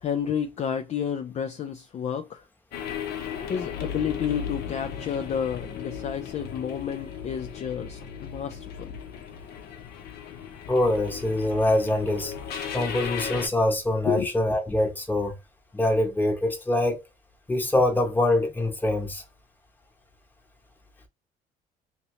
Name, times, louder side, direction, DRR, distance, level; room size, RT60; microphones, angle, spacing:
voice 1, 0.0-2.4 3.5-8.9 14.0-14.3, left 8 dB, 40° left, 0.4 m, -30 dB
sound 1, 2.7-13.5, left 8 dB, 70° left, 0.8 m, -36 dB
voice 2, 10.7-12.3 12.7-15.4 15.7-17.0 17.5-19.2, left 1 dB, 10° left, 1.0 m, -24 dB
3.0 x 2.8 x 3.0 m
cardioid pair, 110°, 17 cm